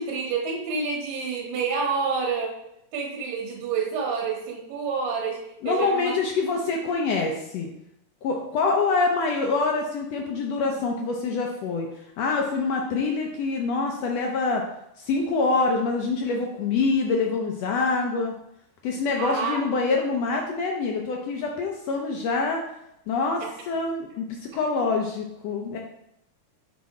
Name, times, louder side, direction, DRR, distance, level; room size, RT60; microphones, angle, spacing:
voice 1, 0.0-2.5 2.9-6.1 19.2-19.6 23.4-23.5 24.8-24.9, right 5 dB, 60° right, 0 dB, 2.2 m, -28 dB
voice 2, 5.6-7.7 8.2-14.6 15.0-18.3 18.8-22.6 23.1-25.8, left 4 dB, 80° left, 1 dB, 1.5 m, -25 dB
6.0 x 4.2 x 4.7 m, 0.80 s
omnidirectional pair, 3.6 m